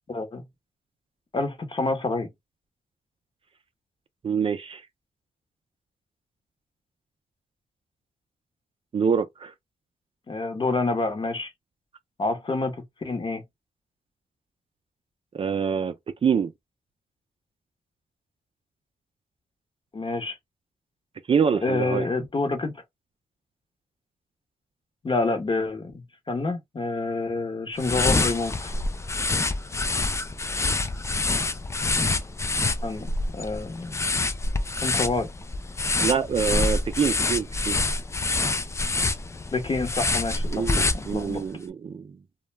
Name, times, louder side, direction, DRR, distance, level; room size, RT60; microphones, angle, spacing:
voice 1, 0.1-0.4 1.3-2.3 10.3-11.5 12.2-13.4 19.9-20.4 21.6-22.8 25.0-28.7 32.8-34.0 34.8-35.3 39.5-41.4, left 3 dB, 35° left, 0.9 m, -28 dB
voice 2, 4.2-4.8 8.9-9.5 15.3-15.9 16.2-16.5 21.3-22.1 36.0-37.8 40.5-42.1, right 6 dB, 40° right, 0.4 m, -25 dB
sound 1, 27.8-41.5, left 3 dB, 20° left, 0.4 m, -26 dB
2.2 x 2.0 x 3.2 m
cardioid pair, 60°, 14 cm